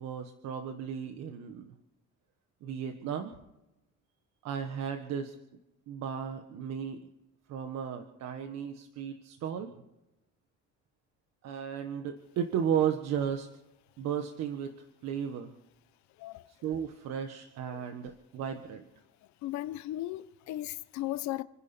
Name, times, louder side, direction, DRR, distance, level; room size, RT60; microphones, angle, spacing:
voice 1, 0.0-1.7 2.6-3.3 4.4-5.3 5.9-7.1 7.5-9.7 11.4-13.5 14.0-14.7 15.0-15.5 16.6-18.8, right 8 dB, 60° right, 1.5 m, -34 dB
voice 2, 16.2-16.5 17.7-17.9 19.4-21.4, left 15 dB, 70° left, 1.0 m, -36 dB
29.5 x 11.0 x 4.4 m
cardioid pair, 155°, 30 cm